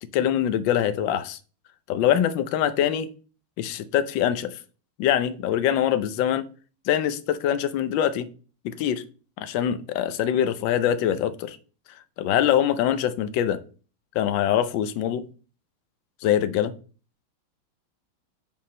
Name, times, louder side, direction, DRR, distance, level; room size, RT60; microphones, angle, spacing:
voice 1, 0.1-1.4 1.9-3.1 3.6-4.6 5.0-6.5 6.9-8.3 8.6-9.0 9.4-11.6 12.2-13.6 14.1-15.2 16.2-16.7, left 10 dB, 70° left, 12 dB, 1.3 m, -23 dB
5.5 x 4.6 x 6.3 m, 0.37 s
omnidirectional pair, 2.4 m